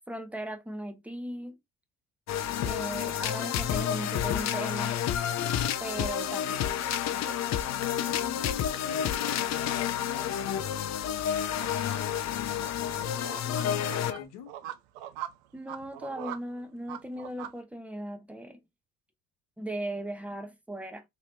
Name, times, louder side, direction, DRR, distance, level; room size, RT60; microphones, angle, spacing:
voice 1, 0.0-1.6 2.6-5.0 5.8-6.7 15.5-18.6 19.6-21.0, right 1 dB, 5° right, 0.7 m, -37 dB
sound 1, 2.3-14.2, left 10 dB, 45° left, 0.6 m, -30 dB
sound 2, 6.8-17.6, right 11 dB, 70° right, 0.6 m, -44 dB
voice 2, 7.6-11.0 11.8-14.5, left 7 dB, 70° left, 1.0 m, -46 dB
2.9 x 2.9 x 3.1 m
hypercardioid pair, 60°, 39 cm